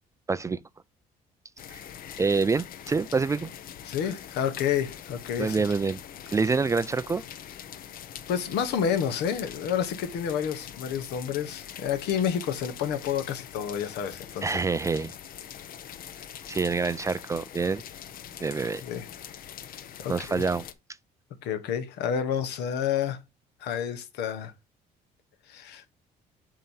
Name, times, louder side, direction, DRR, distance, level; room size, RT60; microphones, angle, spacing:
voice 1, 0.3-0.6 1.7-1.8 2.2-3.5 5.4-6.0 6.3-7.2 14.4-15.1 16.5-17.8 18.4-18.8 20.1-20.6, right 4 dB, 20° right, 0.3 m, -26 dB
sound 1, 1.6-20.7, left 9 dB, 60° left, 0.7 m, -43 dB
voice 2, 3.8-5.7 8.3-14.6 18.8-19.0 20.0-20.4 21.4-23.2 23.6-24.5 25.5-25.8, left 8 dB, 80° left, 1.1 m, -29 dB
7.5 x 2.9 x 5.5 m
cardioid pair, 110°, 17 cm